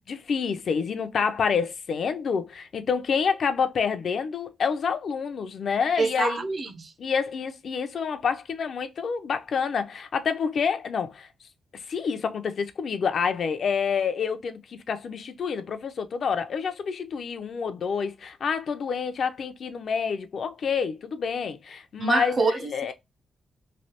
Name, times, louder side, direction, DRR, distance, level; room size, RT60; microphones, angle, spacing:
voice 1, 0.0-6.4 7.0-11.3 11.7-22.9, left 6 dB, 55° left, 0.5 m, -28 dB
voice 2, 6.0-6.9 22.0-22.9, right 4 dB, 35° right, 0.5 m, -26 dB
3.1 x 2.6 x 2.8 m
wide cardioid pair, 135°, 0 cm